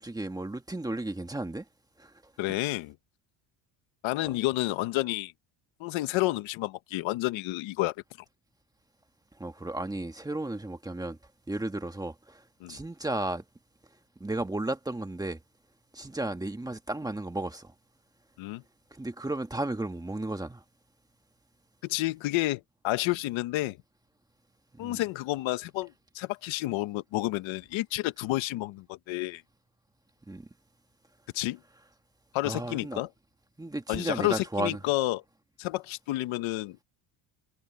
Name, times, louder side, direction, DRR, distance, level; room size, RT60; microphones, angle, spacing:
voice 1, 0.0-1.6 2.0-2.1 2.5-2.6 9.4-11.2 11.5-13.4 14.2-15.4 15.9-17.7 18.9-20.6 24.8-25.0 30.3-30.5 32.4-33.0 33.6-34.8, right 2 dB, 10° right, 1.6 m, -34 dB
voice 2, 2.4-2.9 4.0-5.3 5.8-7.9 12.6-12.8 18.4-18.6 21.8-23.8 24.8-29.4 31.3-31.6 32.3-33.1 33.9-35.2 35.6-36.8, left 18 dB, 80° left, 1.3 m, -30 dB
cardioid pair, 135°, 46 cm